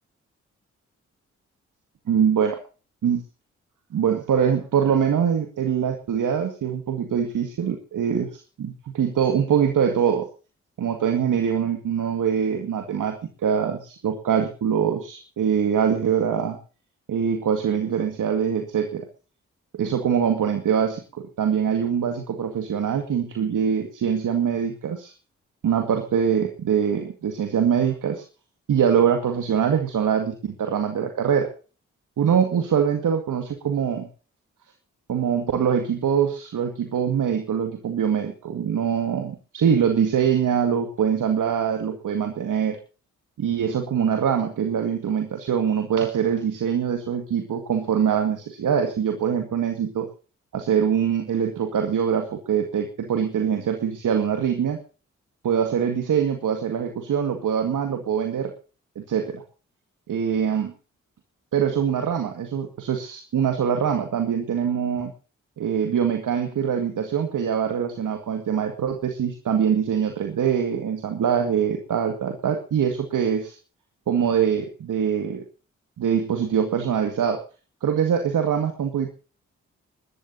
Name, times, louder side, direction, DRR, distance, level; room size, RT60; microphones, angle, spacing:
voice 1, 2.1-2.6 3.0-3.2 3.9-8.3 8.6-10.3 10.8-13.2 13.4-16.6 17.1-19.1 19.7-25.1 25.6-28.2 28.7-31.5 32.2-34.1 35.1-42.8 43.4-50.1 50.5-54.8 55.4-58.5 59.0-59.4 60.1-60.7 61.5-65.1 65.6-73.6 74.1-75.4 76.0-77.4 77.8-79.1, right 8 dB, 70° right, 5 dB, 2.1 m, -23 dB
24.0 x 12.5 x 2.8 m, 0.36 s
supercardioid pair, 40°, 32 cm